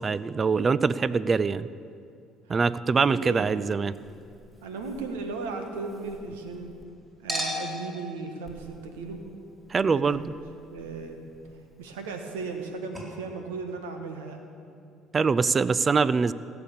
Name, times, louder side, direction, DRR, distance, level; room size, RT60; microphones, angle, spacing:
voice 1, 0.0-1.7 2.5-4.0 9.7-10.2 15.1-16.3, right 5 dB, 35° right, 17 dB, 0.4 m, -23 dB
voice 2, 2.8-3.5 4.6-6.8 7.2-9.2 9.9-10.2 10.7-11.2 11.8-14.5, right 4 dB, 85° right, 5 dB, 1.4 m, -36 dB
Chink clink, 3.9-6.8 7.3-12.7 12.9-13.0, left 1 dB, 15° right, 4.3 m, -41 dB
16.0 x 6.9 x 8.6 m, 2.5 s
hypercardioid pair, 65°, 0 cm